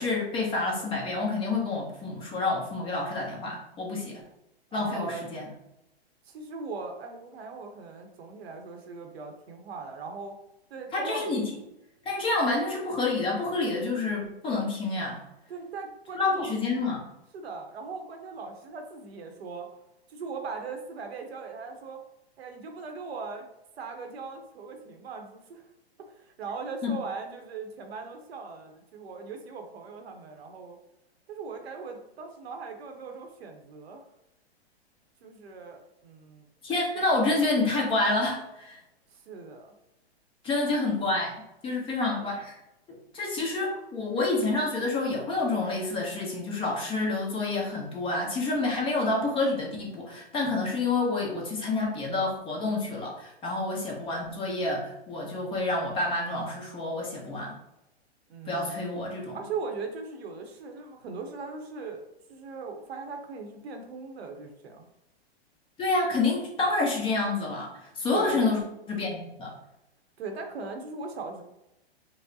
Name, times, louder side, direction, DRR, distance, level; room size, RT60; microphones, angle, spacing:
voice 1, 0.0-4.2 4.7-5.5 10.9-11.5 12.0-15.2 16.1-17.0 26.8-26.9 36.6-38.8 40.4-42.6 43.1-57.5 58.5-59.4 65.8-68.6 68.9-69.5, left 3 dB, 15° left, -2 dB, 0.7 m, -28 dB
voice 2, 4.7-5.4 6.2-10.4 10.7-11.3 15.5-16.5 17.3-19.7 20.1-22.0 22.4-23.5 23.8-25.6 26.1-30.8 31.3-34.0 35.2-37.0 39.1-39.8 40.5-40.7 58.3-58.8 59.3-62.0 62.3-64.8 68.1-68.4 70.2-71.4, right 4 dB, 75° right, 4 dB, 0.9 m, -39 dB
4.7 x 2.1 x 2.7 m, 0.87 s
hypercardioid pair, 135°, 32 cm